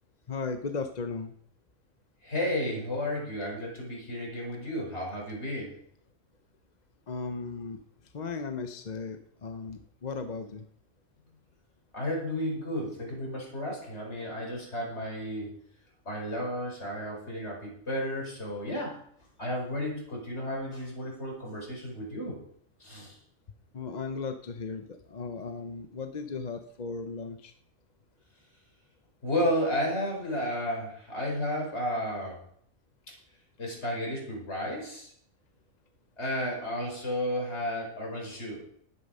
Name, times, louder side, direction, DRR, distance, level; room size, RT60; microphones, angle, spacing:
voice 1, 0.3-1.3 7.1-7.8 8.1-10.7 23.7-27.5, left 4 dB, 40° left, 7 dB, 0.8 m, -36 dB
voice 2, 2.2-5.7 11.9-15.5 16.0-19.0 19.4-22.4 22.8-23.2 29.2-32.4 33.6-35.1 36.2-38.6, equal, 55° left, -2 dB, 4.8 m, -32 dB
12.0 x 9.5 x 5.5 m, 0.67 s
omnidirectional pair, 1.3 m